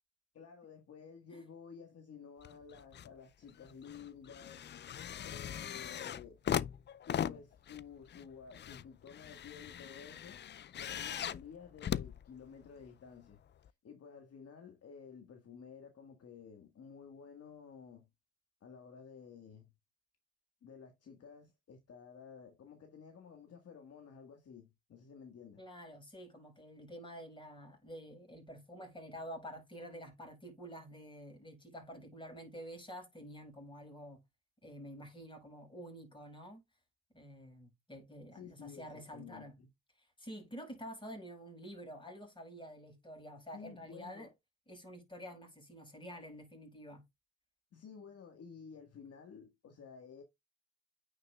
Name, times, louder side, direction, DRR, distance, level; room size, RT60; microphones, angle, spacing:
voice 1, 0.3-4.7 5.2-6.4 7.1-10.4 10.7-13.4 13.8-18.1 18.6-19.7 20.6-25.6 38.3-39.7 43.5-44.3 47.7-50.2, left 6 dB, 55° left, 1.6 m, -53 dB
sound 1, 2.4-3.1 3.5-12.9 13.6-13.7, left 9 dB, 35° left, 0.4 m, -40 dB
voice 2, 25.6-34.2 34.6-36.6 37.1-39.5 40.0-44.3 44.7-47.0, equal, 15° left, 5.7 m, -49 dB
9.2 x 5.6 x 2.3 m
cardioid pair, 90°, 30 cm